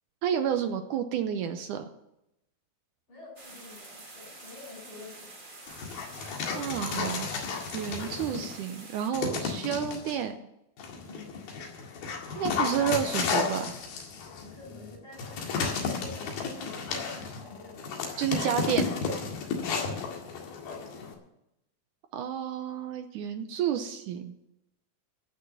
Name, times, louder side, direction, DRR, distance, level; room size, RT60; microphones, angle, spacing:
voice 1, 0.2-1.9 6.5-7.3 7.7-10.4 12.4-13.8 18.2-18.9 22.1-24.4, right 9 dB, 75° right, 8 dB, 2.0 m, -30 dB
voice 2, 3.1-5.3 11.0-11.3 14.4-18.0 18.4-20.0, left 3 dB, 65° left, -2 dB, 8.4 m, -49 dB
sound 1, 3.4-9.1, right 2 dB, 30° right, 0.9 m, -47 dB
Dog, 5.7-8.6 9.1-10.2 10.8-21.1, left 5 dB, 85° left, 3.8 m, -33 dB
15.5 x 6.4 x 9.4 m, 0.85 s
omnidirectional pair, 4.2 m